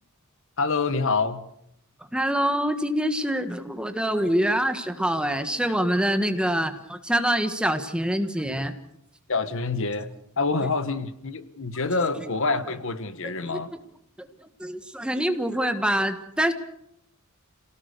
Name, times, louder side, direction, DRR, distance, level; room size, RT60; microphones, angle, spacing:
voice 1, 0.6-1.5 9.3-10.1 10.4-13.7, left 3 dB, 65° left, 1.3 m, -26 dB
voice 2, 2.1-8.7 12.2-12.6 13.2-13.6 14.2-14.3 14.6-16.5, equal, 5° right, 1.5 m, -25 dB
28.0 x 18.0 x 6.8 m
head